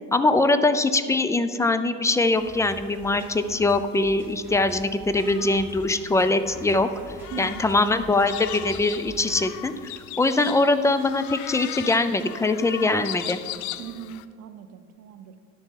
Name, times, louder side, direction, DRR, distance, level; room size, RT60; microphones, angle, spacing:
voice 1, 0.1-6.9 7.4-9.9 10.2-13.4, left 2 dB, 10° left, 11 dB, 0.3 m, -22 dB
sound 1, 2.2-14.3, left 14 dB, 75° left, 0.5 m, -39 dB
sound 2, 2.3-9.5, right 1 dB, 10° right, 2.7 m, -45 dB
voice 2, 7.3-7.6 13.8-15.4, right 8 dB, 60° right, 11 dB, 0.7 m, -39 dB
10.5 x 6.6 x 4.6 m, 2.1 s
cardioid pair, 120°, 29 cm